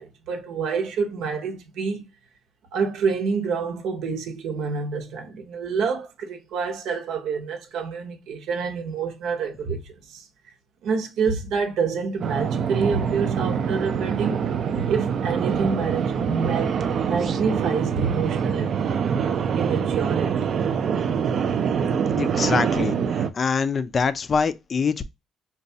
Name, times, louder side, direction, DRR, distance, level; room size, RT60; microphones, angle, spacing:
voice 1, 0.0-2.1 2.7-10.3 10.8-14.4 14.7-18.8 19.6-20.9, right 5 dB, 75° right, 0.7 m, -27 dB
sound 1, 12.2-23.3, right 7 dB, 50° right, 0.4 m, -25 dB
voice 2, 22.2-23.0 23.3-25.0, left 5 dB, 35° left, 0.3 m, -24 dB
3.9 x 2.2 x 2.6 m
cardioid pair, 125°, 0 cm